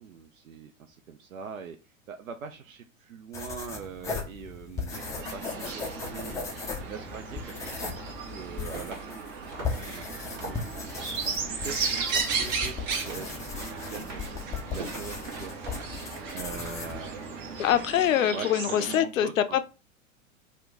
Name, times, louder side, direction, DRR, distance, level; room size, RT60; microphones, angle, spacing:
voice 1, 0.0-1.8 2.1-6.4 6.8-7.8 8.1-9.1 9.5-10.6 11.6-17.7 18.3-19.6, right 6 dB, 80° right, 0.5 m, -42 dB
sound 1, 3.3-18.2, left 5 dB, 10° left, 0.3 m, -38 dB
sound 2, 4.9-19.0, right 5 dB, 45° right, 1.0 m, -35 dB
sound 3, 5.8-16.3, right 2 dB, 65° right, 1.4 m, -45 dB
voice 2, 17.6-19.6, left 10 dB, 75° left, 0.5 m, -24 dB
2.9 x 2.1 x 3.5 m
figure-of-eight pair, 90°, 40 cm